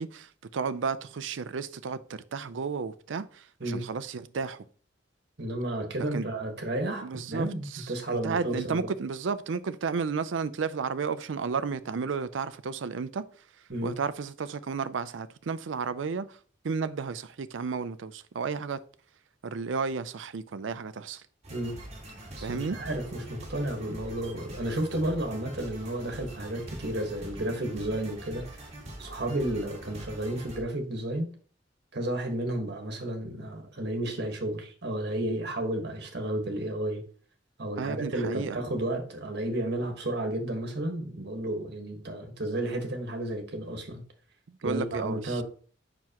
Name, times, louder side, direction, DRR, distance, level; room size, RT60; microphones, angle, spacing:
voice 1, 0.0-4.6 6.1-6.2 7.0-13.2 13.8-16.4 16.6-18.8 19.4-21.2 22.4-22.8 37.8-38.6 44.5-45.4, right 5 dB, 90° right, 0.5 m, -33 dB
voice 2, 5.4-8.9 13.7-13.9 21.5-21.8 22.4-28.6 29.0-31.3 31.9-37.0 37.6-44.0 44.6-45.4, right 1 dB, 60° right, 1.5 m, -32 dB
sound 1, 21.4-30.6, right 1 dB, 35° right, 1.9 m, -44 dB
7.5 x 6.0 x 2.9 m
head